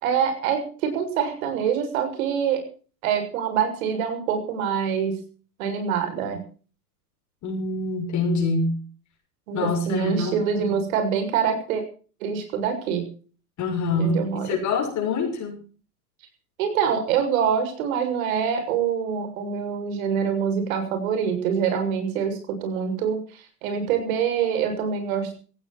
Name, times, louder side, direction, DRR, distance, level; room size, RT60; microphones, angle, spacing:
voice 1, 0.0-2.6 3.0-5.2 5.6-6.4 9.5-11.8 12.2-13.1 14.0-14.6 16.6-25.3, right 7 dB, 60° right, 6 dB, 7.2 m, -25 dB
voice 2, 7.4-8.7 9.5-10.8 13.6-15.5, left 3 dB, 35° left, 1 dB, 6.8 m, -25 dB
18.0 x 16.5 x 4.4 m, 0.39 s
hypercardioid pair, 100°, 46 cm